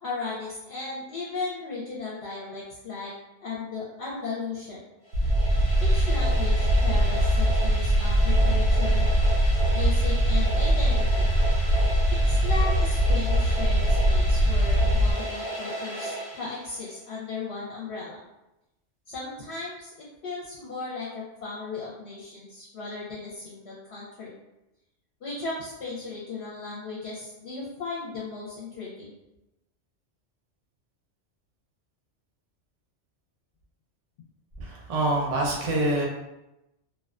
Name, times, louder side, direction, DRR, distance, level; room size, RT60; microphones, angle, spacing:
voice 1, 0.0-3.1 3.4-4.8 5.8-9.0 9.7-11.3 12.3-18.2 19.1-24.3 25.2-29.1, left 3 dB, 70° left, -6 dB, 0.8 m, -36 dB
sound 1, 5.1-17.0, right 1 dB, 25° left, 0.6 m, -35 dB
sound 2, 5.1-15.1, equal, 80° right, 0.9 m, -22 dB
voice 2, 34.6-36.0, right 1 dB, 45° right, -2 dB, 0.5 m, -25 dB
2.4 x 2.2 x 2.4 m, 0.93 s
omnidirectional pair, 1.2 m